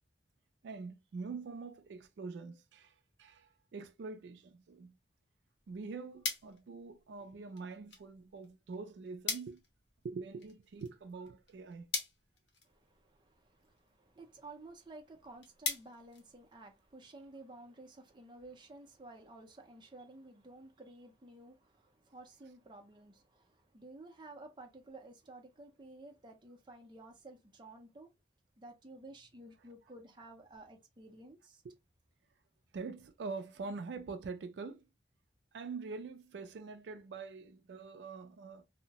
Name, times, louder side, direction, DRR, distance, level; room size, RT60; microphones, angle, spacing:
voice 1, 0.6-4.9 5.7-9.6 10.0-11.9 31.6-31.7 32.7-34.8 35.5-38.7, right 4 dB, 75° right, 0.3 m, -44 dB
sound 1, 5.5-17.0, left 4 dB, 75° left, 0.8 m, -45 dB
voice 2, 12.6-28.1 28.6-31.6, right 2 dB, 25° right, 0.5 m, -53 dB
2.7 x 2.1 x 2.8 m
head